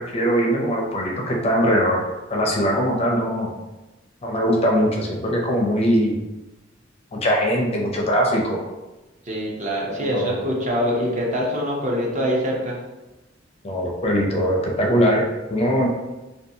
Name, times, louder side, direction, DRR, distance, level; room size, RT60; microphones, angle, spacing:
voice 1, 0.0-2.0 2.3-3.5 4.2-6.1 7.1-8.6 9.9-10.3 13.6-15.2 15.5-15.9, equal, 30° left, 0 dB, 0.4 m, -21 dB
voice 2, 9.2-12.8, equal, 40° right, -2 dB, 0.6 m, -24 dB
2.6 x 2.3 x 2.6 m, 1.1 s
head